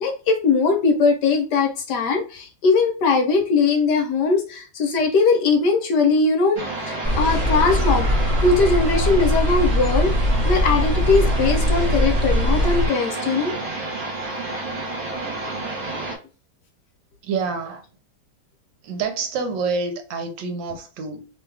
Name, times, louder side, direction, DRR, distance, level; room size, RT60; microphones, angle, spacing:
voice 1, 0.0-8.1 8.4-10.1 10.4-13.5, left 4 dB, 70° left, 1.2 m, -20 dB
sound 1, 6.6-16.2, right 2 dB, 55° right, 1.3 m, -30 dB
sound 2, 7.0-12.9, equal, 10° right, 0.7 m, -21 dB
voice 2, 17.2-17.8 18.8-21.3, right 4 dB, 75° right, 1.4 m, -27 dB
3.2 x 2.3 x 3.2 m
omnidirectional pair, 2.1 m